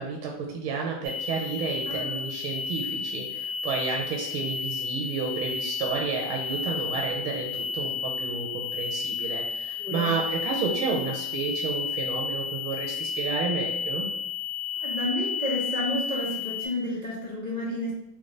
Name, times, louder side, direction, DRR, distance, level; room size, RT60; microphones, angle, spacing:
voice 1, 0.0-14.1, right 5 dB, 80° right, 0 dB, 1.4 m, -31 dB
sound 1, 1.0-16.7, left 5 dB, 55° right, 1.4 m, -32 dB
voice 2, 1.9-2.3 9.8-10.1 14.8-17.9, left 1 dB, 75° left, -8 dB, 0.4 m, -31 dB
3.6 x 3.3 x 3.8 m, 0.83 s
omnidirectional pair, 2.3 m